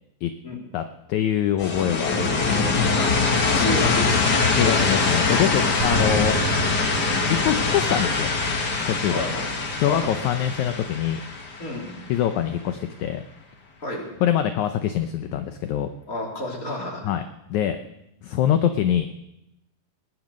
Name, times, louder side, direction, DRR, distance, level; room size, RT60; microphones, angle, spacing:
voice 1, 1.1-3.0 4.6-6.4 7.4-8.3 8.9-9.3 9.7-11.2 12.1-13.2 14.2-15.9 17.1-17.2 17.5-17.8 18.2-19.1, left 10 dB, 70° left, 8 dB, 2.0 m, -24 dB
sound 1, 1.6-12.3, left 4 dB, 45° left, 1.4 m, -23 dB
voice 2, 3.5-4.5 5.8-6.2 9.0-10.1 11.6-12.0 13.8-14.1 16.1-17.1, left 1 dB, 25° left, -1 dB, 3.6 m, -31 dB
sound 2, 5.8-7.7, right 7 dB, 80° right, 3.5 m, -31 dB
19.5 x 10.5 x 6.4 m, 0.89 s
omnidirectional pair, 3.9 m